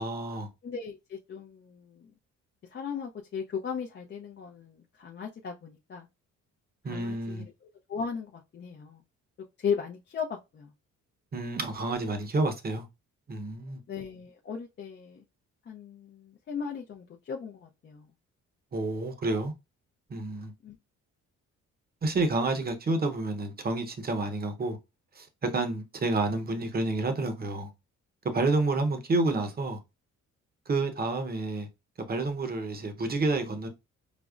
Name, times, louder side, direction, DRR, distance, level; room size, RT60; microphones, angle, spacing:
voice 1, 0.0-0.5 6.8-7.5 11.3-12.9 13.3-13.8 18.7-19.5 20.1-20.5 22.0-24.8 25.2-27.7 28.3-29.8 30.7-31.7 32.1-33.7, right 2 dB, 30° right, 0.8 m, -29 dB
voice 2, 0.6-2.1 2.7-6.1 6.9-7.4 7.9-9.0 9.6-10.7 13.9-15.2 15.7-18.1 20.6-20.8, left 6 dB, 35° left, 0.5 m, -37 dB
5.0 x 2.0 x 2.4 m
cardioid pair, 90°, 30 cm